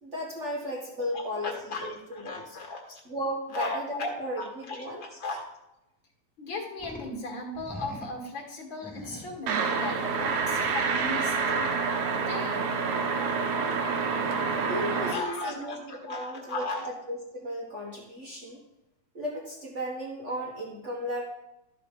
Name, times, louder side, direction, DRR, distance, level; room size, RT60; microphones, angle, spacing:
voice 1, 0.0-1.5 1.8-1.9 2.2-2.4 3.0-5.0 14.6-18.6 19.1-21.2, equal, 45° right, -2 dB, 0.9 m, -35 dB
voice 2, 1.1-3.0 3.5-5.4 6.4-11.7 12.1-12.6 15.1-16.9, left 2 dB, 45° left, 0 dB, 2.2 m, -36 dB
sound 1, 6.8-7.2 7.5-8.2 8.8-9.4 10.0-12.1, equal, 5° left, 1.4 m, -44 dB
sound 2, 9.5-15.1, right 5 dB, 70° right, 1.7 m, -28 dB
13.0 x 4.9 x 5.1 m, 0.92 s
omnidirectional pair, 3.3 m